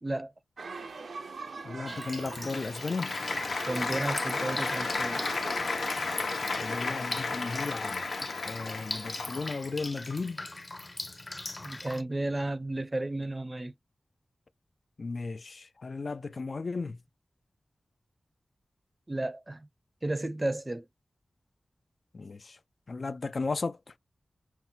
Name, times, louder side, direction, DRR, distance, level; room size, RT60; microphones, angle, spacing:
voice 1, 0.0-0.3 3.7-5.2 11.6-13.7 19.1-19.7 20.0-20.9, right 2 dB, 25° right, 0.5 m, -33 dB
sound 1, 0.6-6.9, right 4 dB, 80° right, 0.6 m, -43 dB
voice 2, 1.6-3.1 6.6-8.1 8.4-10.4 15.0-17.0 22.1-22.6 22.9-23.8, left 4 dB, 55° left, 0.3 m, -35 dB
Drip, 1.9-12.0, left 2 dB, 30° left, 0.7 m, -40 dB
Applause, 2.1-9.7, left 3 dB, 75° left, 1.0 m, -34 dB
5.7 x 2.1 x 2.7 m
wide cardioid pair, 115°, 0 cm